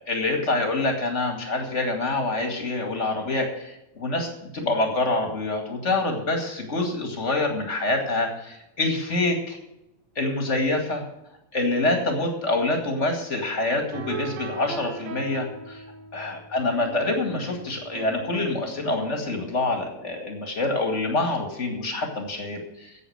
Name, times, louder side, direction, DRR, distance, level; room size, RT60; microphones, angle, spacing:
voice 1, 0.1-9.6 10.2-11.0 11.5-15.8 16.1-23.0, left 2 dB, 25° left, 2 dB, 1.7 m, -26 dB
sound 1, 13.9-20.1, right 6 dB, 85° right, 3.0 m, -40 dB
11.0 x 8.1 x 7.8 m, 0.87 s
omnidirectional pair, 4.1 m